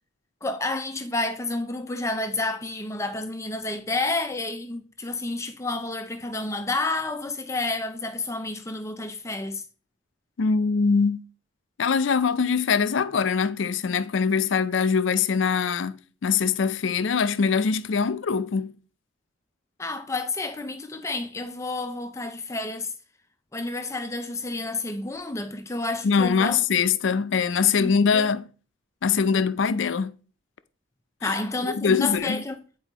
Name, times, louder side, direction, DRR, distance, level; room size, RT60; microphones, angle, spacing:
voice 1, 0.4-9.6 19.8-22.9 23.5-26.6 27.8-28.3 31.2-32.6, left 2 dB, 15° left, 0.5 m, -30 dB
voice 2, 10.4-11.2 11.8-18.7 26.0-28.4 29.0-30.2 31.2-31.3 31.7-32.4, left 5 dB, 80° left, 0.5 m, -23 dB
9.2 x 4.5 x 2.9 m
head